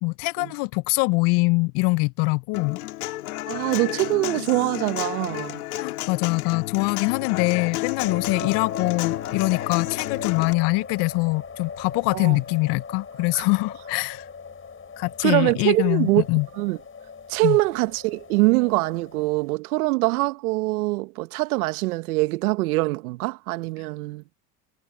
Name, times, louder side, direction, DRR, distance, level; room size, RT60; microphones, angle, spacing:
voice 1, 0.0-2.8 5.8-14.2 15.0-16.5 17.4-17.6, left 27 dB, 65° left, 1.1 m, -23 dB
Human voice / Acoustic guitar, 2.5-10.5, left 17 dB, 80° left, 2.8 m, -31 dB
voice 2, 3.5-5.6 12.1-12.4 13.3-13.4 15.2-16.2 16.6-16.8 17.3-24.2, right 22 dB, 75° right, 1.5 m, -23 dB
sound 1, 8.0-19.6, left 5 dB, 30° left, 6.1 m, -40 dB
hypercardioid pair, 70°, 44 cm